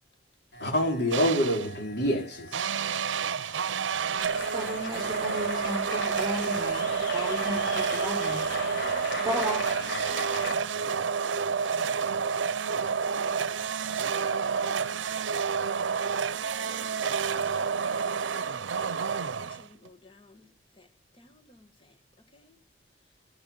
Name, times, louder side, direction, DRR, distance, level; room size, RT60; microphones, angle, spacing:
voice 1, 0.5-3.9, equal, 65° left, 4.5 m, -29 dB
sound 1, 1.1-1.8 2.5-19.9, right 6 dB, 90° right, 0.6 m, -29 dB
sound 2, 4.2-10.5, left 3 dB, 80° left, 4.6 m, -37 dB
voice 2, 4.5-8.5 9.2-9.6, equal, 25° right, 4.4 m, -34 dB
voice 3, 8.8-9.3 9.7-12.0 12.6-15.3 16.3-19.0 19.4-20.5 20.8-20.9 21.2-21.7 22.3-22.5, left 1 dB, 30° left, 1.7 m, -52 dB
15.5 x 11.0 x 7.2 m
head